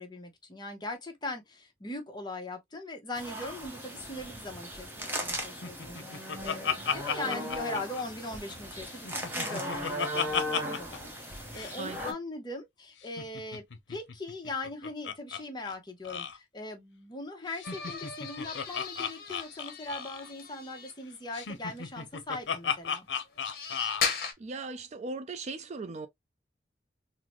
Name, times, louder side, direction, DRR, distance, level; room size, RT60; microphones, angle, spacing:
voice 1, 0.0-13.6 13.9-23.1, left 2 dB, 25° left, 0.8 m, -40 dB
sound 1, 3.1-12.1, equal, 10° right, 0.8 m, -37 dB
Laughter, 5.6-8.5 8.9-11.0 11.2-11.3 11.5-11.8 13.0-15.4 15.7-15.8 16.0-16.4 17.5-20.3 21.3-24.1, left 6 dB, 90° left, 0.6 m, -34 dB
voice 2, 11.8-12.1 24.4-26.1, right 3 dB, 40° right, 0.4 m, -38 dB
sound 2, 17.6-20.9 21.7-21.8 23.3-24.3, left 5 dB, 55° left, 1.0 m, -37 dB
3.9 x 2.0 x 2.9 m
head